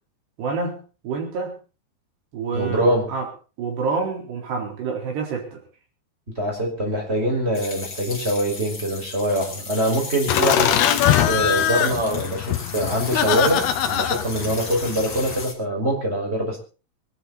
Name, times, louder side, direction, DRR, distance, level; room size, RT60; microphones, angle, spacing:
voice 1, 0.4-1.6 2.3-3.3 3.6-5.6, right 4 dB, 80° right, 1 dB, 6.4 m, -28 dB
voice 2, 2.5-3.0 6.4-10.8 11.2-16.6, right 1 dB, 15° right, 0 dB, 5.9 m, -24 dB
sound 1, 7.5-15.5, left 3 dB, 25° left, 4.1 m, -35 dB
Laughter, 10.3-15.5, left 10 dB, 80° left, 3.3 m, -22 dB
24.5 x 12.0 x 4.2 m, 0.35 s
omnidirectional pair, 4.7 m